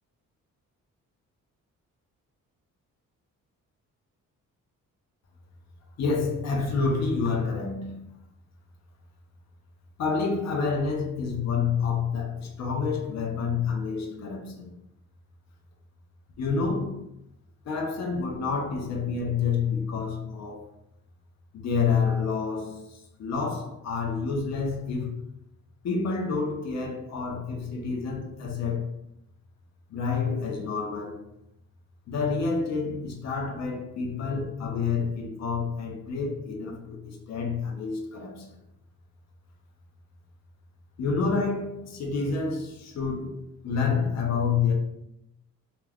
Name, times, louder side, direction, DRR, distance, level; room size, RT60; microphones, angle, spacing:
voice 1, 6.0-8.1 10.0-14.7 16.4-17.0 17.6-20.7 21.5-25.2 25.8-28.9 29.9-31.2 32.1-38.5 41.0-44.7, left 5 dB, 55° left, 0.6 m, -28 dB
2.3 x 2.2 x 3.4 m
supercardioid pair, 65°, 33 cm